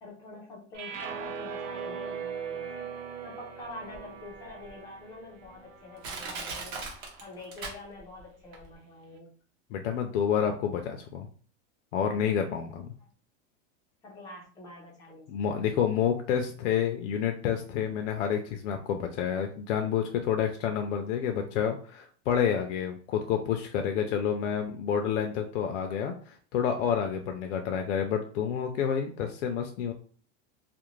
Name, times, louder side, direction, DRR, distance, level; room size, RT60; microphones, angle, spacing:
voice 1, 0.0-2.9 3.2-6.9 7.2-9.3 14.0-15.3, left 2 dB, 10° left, -3 dB, 0.4 m, -46 dB
sound 1, 0.7-7.0, right 6 dB, 75° right, 0.7 m, -40 dB
Crushing, 3.9-4.0 4.7-4.8 5.4-5.5 6.0-8.2 8.5-8.6, right 4 dB, 45° right, 0.8 m, -38 dB
voice 2, 9.7-11.3 11.9-12.9 15.3-29.9, left 8 dB, 85° left, 4 dB, 0.5 m, -29 dB
2.5 x 2.0 x 3.0 m, 0.44 s
supercardioid pair, 165°, 36 cm